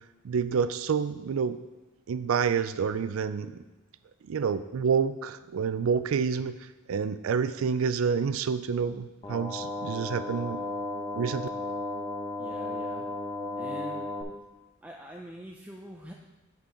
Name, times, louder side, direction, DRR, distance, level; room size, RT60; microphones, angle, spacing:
voice 1, 0.2-1.6 2.1-3.6 4.3-6.6 6.9-10.6 11.1-11.5, right 6 dB, 80° right, 13 dB, 0.4 m, -28 dB
sound 1, 9.2-14.2, left 2 dB, 25° left, 0.9 m, -34 dB
voice 2, 12.4-13.1 13.6-14.1 14.8-16.1, equal, 5° right, 0 dB, 0.4 m, -44 dB
8.2 x 5.9 x 3.8 m, 1.1 s
head